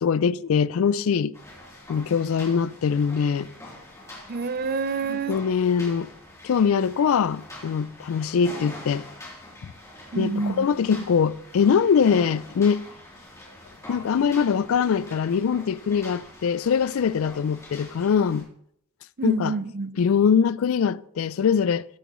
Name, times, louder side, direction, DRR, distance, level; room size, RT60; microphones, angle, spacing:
voice 1, 0.0-1.3 1.9-3.5 5.1-6.1 6.4-9.1 10.2-12.8 13.9-18.5 19.2-19.5 20.0-21.8, left 6 dB, 70° left, 0.4 m, -22 dB
sound 1, 1.3-18.4, left 1 dB, 15° left, 3.3 m, -44 dB
voice 2, 4.3-5.4 10.1-10.9 19.2-19.9, right 4 dB, 45° right, 0.5 m, -28 dB
14.5 x 9.1 x 3.1 m
head